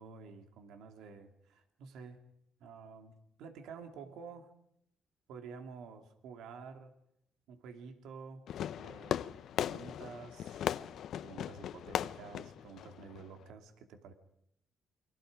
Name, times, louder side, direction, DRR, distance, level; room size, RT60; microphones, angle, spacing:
voice 1, 0.0-2.2 2.6-4.5 5.3-6.9 7.5-8.5 8.8-9.2 9.6-10.8 11.2-14.1, right 5 dB, 85° right, 6 dB, 2.4 m, -50 dB
Fireworks, 8.5-13.5, left 10 dB, 75° left, 0.8 m, -38 dB
29.0 x 24.0 x 5.1 m, 0.76 s
cardioid pair, 90°, 0 cm